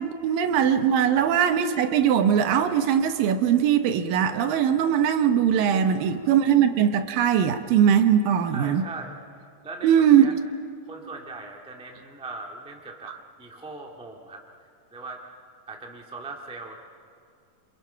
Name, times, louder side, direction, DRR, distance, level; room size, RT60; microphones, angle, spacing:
voice 1, 0.0-8.8 9.8-10.4 13.1-13.2, right 8 dB, 75° right, 8 dB, 2.5 m, -21 dB
voice 2, 5.9-6.4 8.5-9.1 9.6-10.3 10.9-13.1 13.4-14.4 14.9-15.2 15.7-16.8, right 3 dB, 5° right, 1 dB, 0.8 m, -40 dB
27.5 x 27.5 x 5.7 m, 2.3 s
omnidirectional pair, 4.3 m